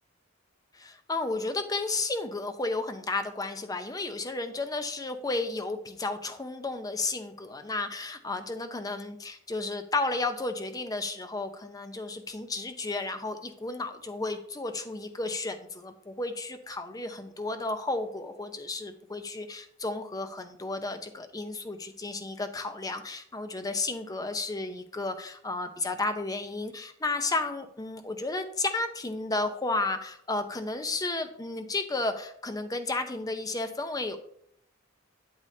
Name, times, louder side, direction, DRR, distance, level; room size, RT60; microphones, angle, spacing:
voice 1, 0.7-34.2, left 3 dB, 20° left, 8 dB, 0.6 m, -33 dB
8.4 x 7.9 x 2.7 m, 0.68 s
head